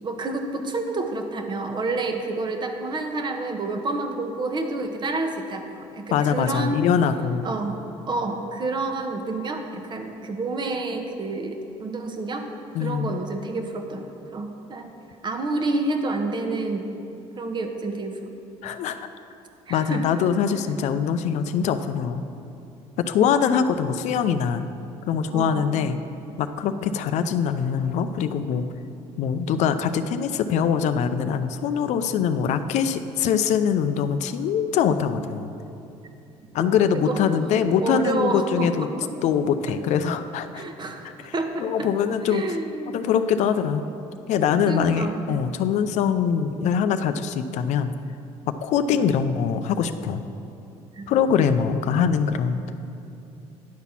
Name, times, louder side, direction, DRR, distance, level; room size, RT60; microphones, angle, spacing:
voice 1, 0.0-6.8 7.4-7.8 8.1-12.5 12.8-14.9 15.2-16.9 17.4-18.2 19.7-20.2 25.3-25.9 36.6-36.7 36.9-37.5 37.8-39.1 39.7-39.8 40.5-41.9 42.3-43.0 44.7-45.4 48.9-49.0 50.9-51.1, right 2 dB, 40° right, 5 dB, 0.9 m, -29 dB
voice 2, 6.1-7.5 12.7-13.2 18.6-19.1 19.7-22.2 23.0-24.7 25.1-26.0 26.4-28.6 29.2-35.5 36.5-38.9 39.2-40.6 41.2-41.3 41.6-42.4 42.9-43.9 44.3-47.9 48.5-50.2 51.1-52.6, left 7 dB, 70° left, 10 dB, 0.5 m, -23 dB
10.5 x 4.1 x 7.1 m, 2.7 s
cardioid pair, 105°, 12 cm